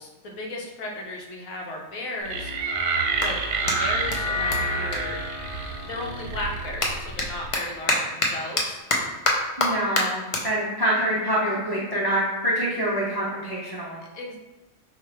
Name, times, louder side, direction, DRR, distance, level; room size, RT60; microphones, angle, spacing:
voice 1, 0.0-2.5 3.2-3.4 3.6-5.2 5.8-8.8 14.1-14.4, left 2 dB, 90° left, 0 dB, 1.2 m, -34 dB
Clapping, 1.8-5.9 6.2-12.8, left 2 dB, 50° left, 0.4 m, -29 dB
sound 1, 2.3-8.7, left 3 dB, 70° left, 1.1 m, -35 dB
sound 2, 2.3-7.5, right 4 dB, 85° right, 1.0 m, -29 dB
voice 2, 9.6-14.0, right 1 dB, 30° right, -5 dB, 0.5 m, -26 dB
4.7 x 2.5 x 3.3 m, 1.1 s
omnidirectional pair, 1.4 m